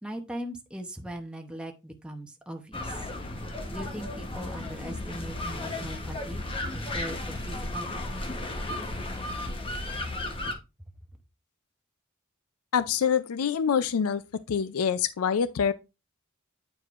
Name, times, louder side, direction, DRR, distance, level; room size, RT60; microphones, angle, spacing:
voice 1, 0.0-3.1 3.7-6.5 6.7-8.3, right 1 dB, 5° right, 0.8 m, -40 dB
sound 1, 2.7-10.5, left 2 dB, 25° left, 1.0 m, -34 dB
voice 2, 12.7-14.2 14.5-15.7, left 7 dB, 85° left, 0.4 m, -25 dB
8.8 x 4.7 x 2.5 m
head